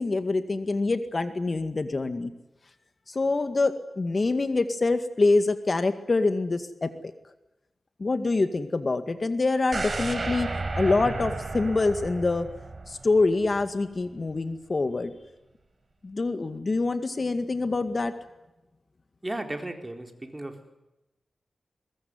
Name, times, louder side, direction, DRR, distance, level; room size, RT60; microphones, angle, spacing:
voice 1, 0.0-2.3 3.1-6.9 8.0-10.5 10.8-12.5 12.9-15.1 16.0-18.1, left 3 dB, 45° left, 9 dB, 2.0 m, -25 dB
sound 1, 9.7-13.7 14.1-14.2, right 3 dB, 45° right, 4.5 m, -33 dB
voice 2, 19.2-20.6, right 1 dB, 20° right, 5 dB, 4.1 m, -35 dB
22.5 x 21.0 x 9.6 m, 0.97 s
cardioid pair, 70°, 0 cm